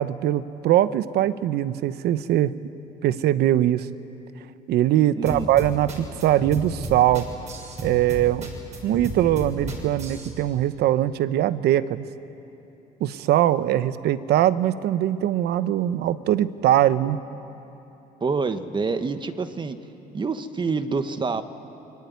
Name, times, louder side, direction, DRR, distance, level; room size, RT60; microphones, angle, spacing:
voice 1, 0.0-2.5 3.0-3.9 4.7-7.3 7.8-8.5 8.8-12.0 13.0-17.2, right 12 dB, 75° right, 14 dB, 0.9 m, -21 dB
sound 1, 5.3-10.3, right 1 dB, 45° right, 6.4 m, -33 dB
voice 2, 18.2-19.8 20.1-21.4, right 4 dB, 30° right, 9 dB, 1.3 m, -27 dB
25.5 x 22.5 x 9.7 m, 2.9 s
cardioid pair, 110°, 17 cm